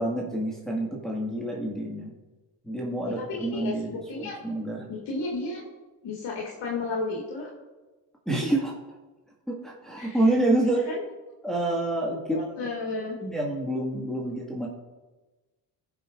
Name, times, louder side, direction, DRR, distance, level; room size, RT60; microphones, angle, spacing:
voice 1, 0.0-2.1 2.6-4.9 8.3-8.7 9.5-10.8 11.4-12.4 13.2-14.7, right 1 dB, ahead, -4 dB, 1.7 m, -28 dB
voice 2, 3.0-4.4 4.9-5.6 6.0-7.5 10.0-10.3 10.6-11.0 12.3-13.2, left 3 dB, 65° left, -3 dB, 1.8 m, -33 dB
15.5 x 5.8 x 2.5 m, 1.2 s
supercardioid pair, 55°, 46 cm